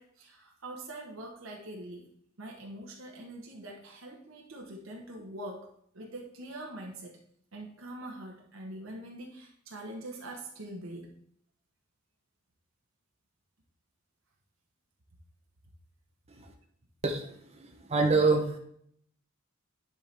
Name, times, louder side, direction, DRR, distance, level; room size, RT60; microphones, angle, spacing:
voice 1, 0.0-2.1 2.4-7.2 7.5-11.1, right 1 dB, 80° right, 0 dB, 1.2 m, -44 dB
voice 2, 17.0-18.6, right 3 dB, 30° right, 3 dB, 0.7 m, -27 dB
10.0 x 4.6 x 3.4 m, 0.66 s
head